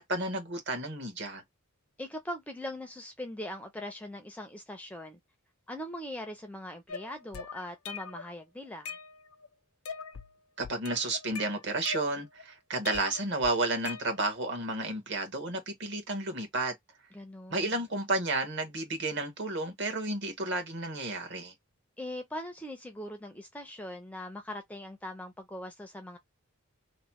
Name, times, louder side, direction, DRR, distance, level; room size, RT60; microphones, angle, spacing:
voice 1, 0.0-1.4 10.6-16.7 17.5-21.5, right 2 dB, 55° right, 1.2 m, -32 dB
voice 2, 2.0-5.2 5.7-9.0 17.1-17.8 22.0-26.2, left 1 dB, 5° left, 0.4 m, -41 dB
sound 1, 6.9-8.3 8.6-9.5 9.8-10.3 10.6-12.4 12.8-14.5, left 5 dB, 75° left, 0.5 m, -42 dB
3.0 x 2.0 x 2.8 m
head